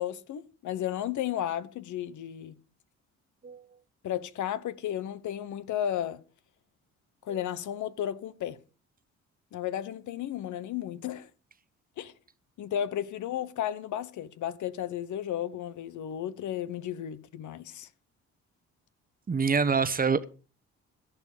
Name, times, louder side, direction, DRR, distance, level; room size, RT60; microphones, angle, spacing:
voice 1, 0.0-2.6 4.0-6.2 7.2-8.6 9.5-11.3 12.0-12.1 12.6-17.9, left 11 dB, 75° left, 1.1 m, -33 dB
voice 2, 19.3-20.2, right 5 dB, 30° right, 1.0 m, -26 dB
13.0 x 10.5 x 5.1 m
cardioid pair, 90°, 30 cm